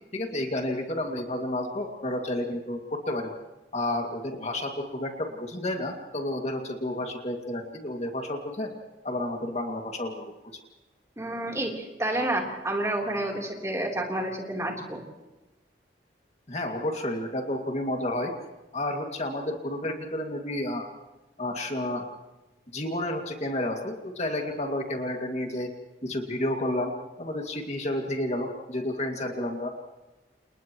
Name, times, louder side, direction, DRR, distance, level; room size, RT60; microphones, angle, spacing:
voice 1, 0.1-3.3 3.7-8.7 9.0-10.3 16.5-18.3 18.7-20.9 21.4-22.0 22.7-25.7 26.0-26.9 27.2-29.7, left 1 dB, 35° left, 2 dB, 2.3 m, -31 dB
voice 2, 11.2-15.0, right 1 dB, 15° right, 0 dB, 3.7 m, -29 dB
29.5 x 29.5 x 3.1 m, 1.1 s
head